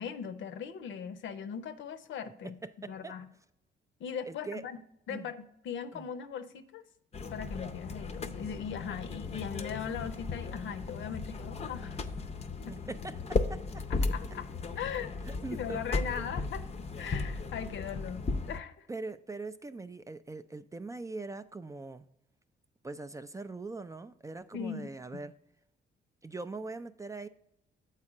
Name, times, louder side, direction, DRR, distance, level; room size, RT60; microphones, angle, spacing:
voice 1, 0.0-3.3 4.0-4.8 5.1-6.8 7.3-12.0 12.7-12.8 13.9-15.2 15.5-16.7 17.0-18.9 24.5-25.2, left 7 dB, 70° left, 11 dB, 0.6 m, -39 dB
voice 2, 2.6-3.2 4.3-4.6 5.1-5.3 5.9-6.1 12.6-13.8 15.2-15.8 18.9-22.1 22.8-25.3 26.2-27.3, right 3 dB, 15° right, 10 dB, 0.3 m, -42 dB
sound 1, 7.1-18.6, left 3 dB, 30° left, 0.6 m, -36 dB
7.4 x 4.4 x 4.8 m, 0.79 s
cardioid pair, 90°, 20 cm